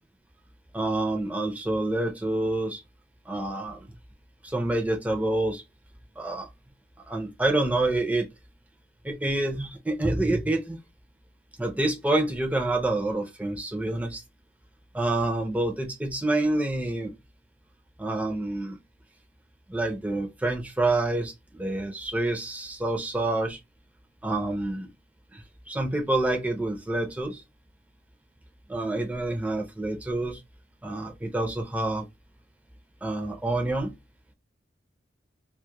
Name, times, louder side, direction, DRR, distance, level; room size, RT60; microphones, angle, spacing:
voice 1, 0.7-2.8 3.3-3.9 4.4-5.6 6.2-6.5 7.1-8.3 9.0-10.8 11.6-14.2 14.9-17.1 18.0-18.8 19.7-23.6 24.2-24.9 25.3-27.4 28.7-30.4 30.8-32.1 33.0-33.9, right 2 dB, 10° right, 0.5 m, -27 dB
2.2 x 2.1 x 2.8 m
head